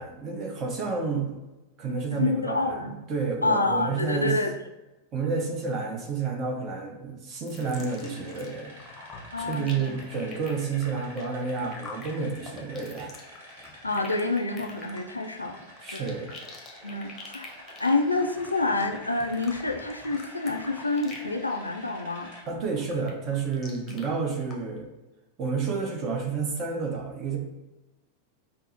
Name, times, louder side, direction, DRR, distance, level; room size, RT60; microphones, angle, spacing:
voice 1, 0.0-1.4 1.8-2.8 3.1-4.3 5.1-8.7 9.4-13.1 15.8-16.3 22.5-24.9 25.4-27.4, right 5 dB, 35° right, 1 dB, 0.8 m, -30 dB
voice 2, 2.1-3.0 3.4-4.5 9.3-10.0 13.8-16.1 16.8-17.5 17.8-22.3 23.9-24.0, left 3 dB, 85° left, 3 dB, 0.3 m, -28 dB
sound 1, 7.4-8.5 8.8-21.4 21.7-22.0 22.4-24.0 24.5-24.6, left 3 dB, 25° left, 0.7 m, -45 dB
sound 2, 7.5-22.4, equal, 55° right, 1.2 m, -48 dB
5.5 x 2.0 x 2.7 m, 1.1 s
figure-of-eight pair, 90°, 0 cm